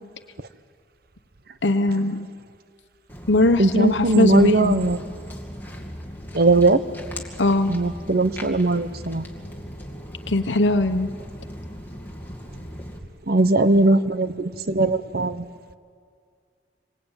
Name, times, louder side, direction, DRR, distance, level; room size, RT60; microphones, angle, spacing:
voice 1, 1.6-2.3 3.3-4.8 7.4-7.7 10.3-11.1, left 2 dB, 80° left, 7 dB, 1.2 m, -20 dB
Walk footsteps, 3.1-13.0, equal, 10° left, 2.5 m, -38 dB
voice 2, 3.6-5.0 6.3-6.8 7.7-9.2 13.3-15.5, right 2 dB, 55° right, 12 dB, 1.0 m, -19 dB
27.0 x 24.5 x 9.0 m, 2.2 s
head